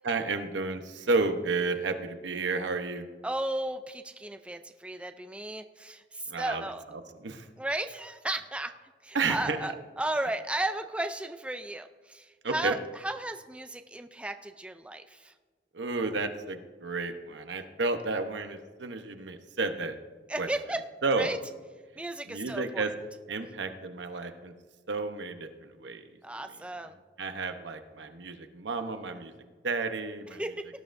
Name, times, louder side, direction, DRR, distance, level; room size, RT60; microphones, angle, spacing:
voice 1, 0.0-3.1 6.3-7.5 9.1-9.8 12.4-12.8 15.7-20.0 20.4-20.5 21.0-21.3 22.3-22.9 23.3-24.5 24.9-26.0 27.2-29.3 29.6-30.4, right 3 dB, 85° right, 7 dB, 0.9 m, -32 dB
voice 2, 3.2-6.8 7.6-8.7 9.0-12.8 13.0-15.3 20.3-20.8 21.2-21.4 22.0-22.9 26.2-27.0 30.3-30.7, right 1 dB, 5° right, 7 dB, 0.3 m, -34 dB
18.5 x 11.0 x 2.6 m, 1.4 s
head